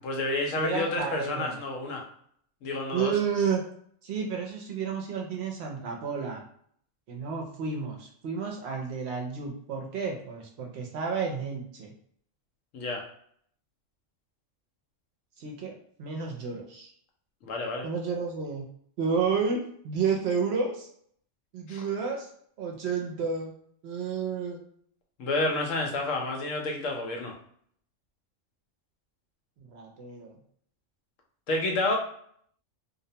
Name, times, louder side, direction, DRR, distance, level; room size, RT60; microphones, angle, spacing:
voice 1, 0.0-2.0 2.6-3.1 12.7-13.0 17.4-17.9 21.7-21.9 25.2-27.3 31.5-32.0, left 2 dB, 85° left, 1 dB, 1.0 m, -29 dB
voice 2, 0.6-1.6 2.9-3.6 4.0-6.4 7.1-11.9 15.4-16.9 17.8-18.7 19.0-20.9 21.5-22.3 22.6-23.5 23.8-24.6 29.6-30.3, right 5 dB, 65° right, 1 dB, 0.7 m, -31 dB
2.5 x 2.1 x 2.7 m, 0.63 s
omnidirectional pair, 1.3 m